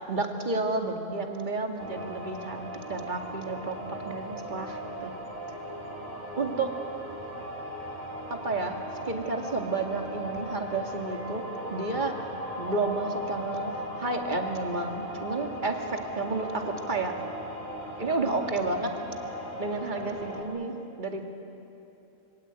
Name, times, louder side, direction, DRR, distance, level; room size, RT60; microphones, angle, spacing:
voice 1, 0.1-5.1 6.4-6.7 8.3-8.8 9.0-11.4 11.7-12.2 12.6-17.1 18.0-18.9 19.6-20.7 21.0-21.2, right 3 dB, 35° right, 3 dB, 2.3 m, -31 dB
sound 1, 1.8-20.4, equal, 10° right, 4.1 m, -38 dB
26.5 x 23.5 x 8.9 m, 2.9 s
omnidirectional pair, 1.5 m